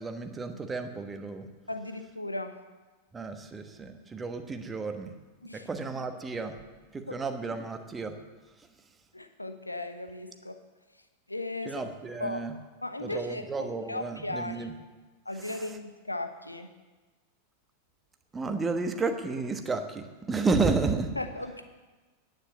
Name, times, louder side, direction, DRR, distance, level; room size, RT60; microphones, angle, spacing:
voice 1, 0.0-1.5 3.1-5.1 5.5-6.6 6.9-8.1 11.6-12.5 13.0-14.7 15.3-15.8 18.3-21.1, right 4 dB, 15° right, 6 dB, 1.1 m, -32 dB
voice 2, 1.7-2.6 5.4-5.7 7.1-7.2 9.1-10.6 11.3-11.8 12.2-12.4 12.8-14.7 15.2-16.7 21.2-21.6, left 2 dB, 85° left, 8 dB, 0.9 m, -36 dB
9.8 x 9.2 x 8.0 m, 1.3 s
figure-of-eight pair, 90°, 0 cm